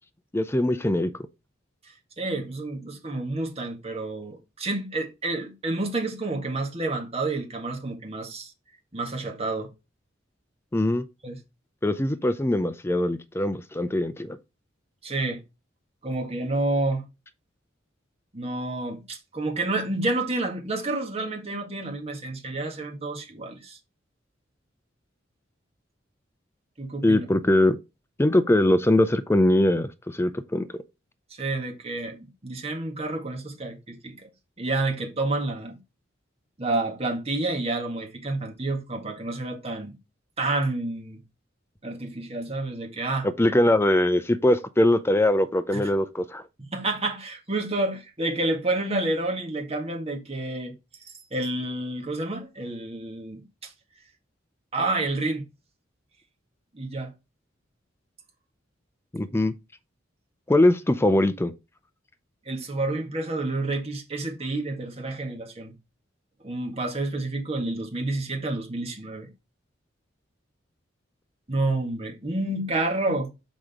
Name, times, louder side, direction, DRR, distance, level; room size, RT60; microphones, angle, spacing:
voice 1, 0.3-1.1 10.7-11.1 11.8-14.4 27.0-27.8 28.2-30.7 43.4-46.4 59.1-59.5 60.5-61.5, left 1 dB, 15° left, 0.5 m, -22 dB
voice 2, 1.9-8.5 8.9-9.7 11.2-11.4 15.0-15.4 16.0-17.1 18.3-23.8 26.8-27.3 31.4-34.3 34.6-35.8 36.6-39.9 40.4-41.2 41.8-43.3 45.7-45.8 46.6-50.7 51.3-53.7 54.7-55.5 56.7-57.1 62.5-65.7 66.4-69.3 71.5-73.3, right 2 dB, 30° right, 1.8 m, -29 dB
6.2 x 5.0 x 3.6 m
head